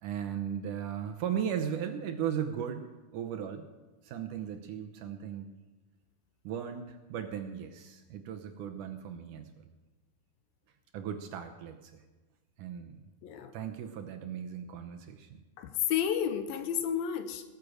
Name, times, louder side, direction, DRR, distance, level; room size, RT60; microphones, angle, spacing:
voice 1, 0.0-3.7 4.0-5.5 6.4-9.7 10.9-12.0 12.6-13.0 13.5-15.4, right 8 dB, 70° right, 6 dB, 2.2 m, -37 dB
voice 2, 13.2-13.5 15.6-17.4, left 9 dB, 85° left, 9 dB, 2.8 m, -31 dB
20.0 x 8.5 x 6.3 m, 1.2 s
omnidirectional pair, 4.1 m